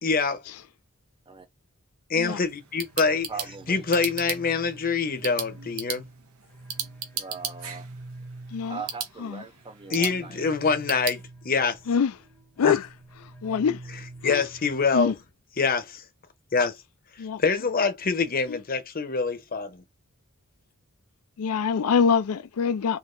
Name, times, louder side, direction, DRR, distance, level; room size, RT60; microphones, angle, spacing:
voice 1, 0.0-0.4 2.1-3.3 3.7-6.0 9.9-11.8 12.6-12.8 14.2-15.1 15.6-16.0 16.5-16.8 17.4-19.8, left 4 dB, 40° left, 0.8 m, -25 dB
sound 1, 2.5-11.2, right 8 dB, 75° right, 0.8 m, -37 dB
sound 2, 2.8-15.3, right 2 dB, 10° left, 0.8 m, -47 dB
voice 2, 3.0-3.8 7.1-7.9 8.7-10.4, right 5 dB, 25° right, 0.5 m, -40 dB
voice 3, 13.4-13.8 14.2-14.4 14.9-15.1 17.2-17.4 18.5-18.6 21.4-23.0, left 6 dB, 80° left, 0.4 m, -24 dB
3.7 x 2.8 x 2.6 m
head